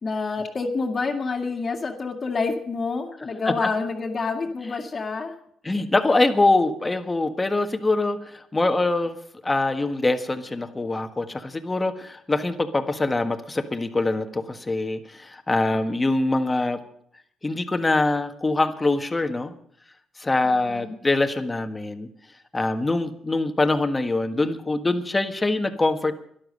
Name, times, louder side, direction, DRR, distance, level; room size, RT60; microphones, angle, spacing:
voice 1, 0.0-5.3 20.4-21.0, left 4 dB, 40° left, 3 dB, 2.0 m, -28 dB
voice 2, 5.6-9.2 9.4-16.8 17.4-19.5 20.2-22.1 22.5-26.1, left 2 dB, 20° left, 8 dB, 1.5 m, -24 dB
12.5 x 11.5 x 6.5 m, 0.65 s
cardioid pair, 90°, 0 cm